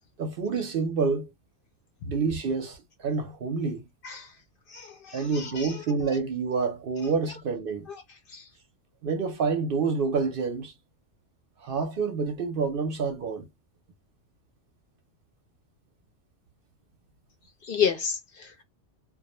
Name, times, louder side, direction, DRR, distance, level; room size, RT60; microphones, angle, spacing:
voice 1, 0.2-1.3 2.0-3.8 5.1-7.9 9.0-10.7 11.6-13.5, right 5 dB, 60° right, 0.7 m, -28 dB
voice 2, 4.7-5.8 8.3-8.4 17.6-18.6, left 7 dB, 60° left, 0.7 m, -30 dB
2.3 x 2.0 x 2.9 m
omnidirectional pair, 1.2 m